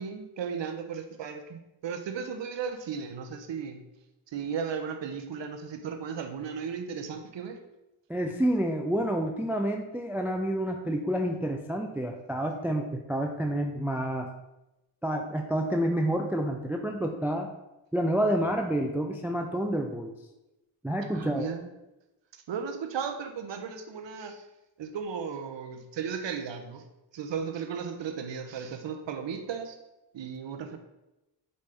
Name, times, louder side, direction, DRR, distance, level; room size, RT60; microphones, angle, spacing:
voice 1, 0.0-3.8 4.3-7.6 21.1-21.7 22.5-24.4 24.8-26.8 27.1-29.8 30.1-30.8, right 6 dB, 65° right, 6 dB, 0.7 m, -35 dB
voice 2, 8.1-14.3 15.0-17.5 17.9-20.1 20.8-21.5, right 1 dB, 5° right, 4 dB, 0.3 m, -29 dB
5.2 x 2.7 x 3.3 m, 0.97 s
cardioid pair, 45°, 48 cm